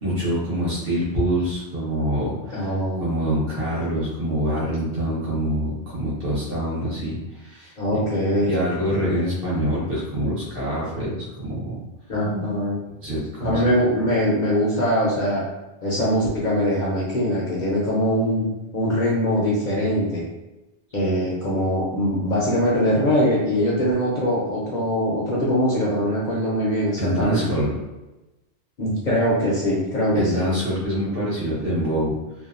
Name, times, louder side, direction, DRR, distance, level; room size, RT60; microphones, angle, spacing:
voice 1, 0.0-2.7 3.0-8.0 8.4-11.7 13.0-13.6 27.0-27.7 30.1-32.1, equal, 60° right, -8 dB, 1.1 m, -25 dB
voice 2, 2.5-3.0 7.8-8.5 12.1-12.8 13.4-15.4 15.8-18.5 18.7-20.2 20.9-27.5 28.8-30.5, equal, 55° left, -5 dB, 0.6 m, -22 dB
2.7 x 2.2 x 2.4 m, 1.0 s
omnidirectional pair, 1.2 m